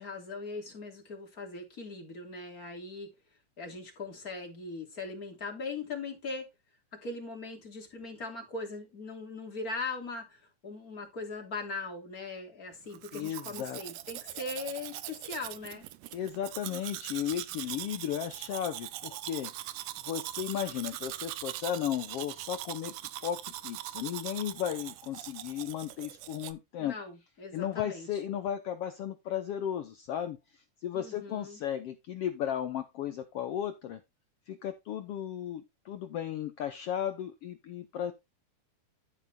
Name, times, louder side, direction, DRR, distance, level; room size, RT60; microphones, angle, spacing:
voice 1, 0.0-3.1 3.6-6.5 6.9-15.9 26.8-28.1 30.9-31.6, left 3 dB, 30° left, 3.3 m, -40 dB
Domestic sounds home sounds, 12.9-26.5, right 15 dB, 80° right, 2.1 m, -42 dB
voice 2, 13.1-13.8 16.1-19.5 20.0-22.9 23.2-26.9 27.5-34.0 34.5-38.1, left 10 dB, 75° left, 1.4 m, -35 dB
12.0 x 4.8 x 4.2 m
omnidirectional pair, 3.6 m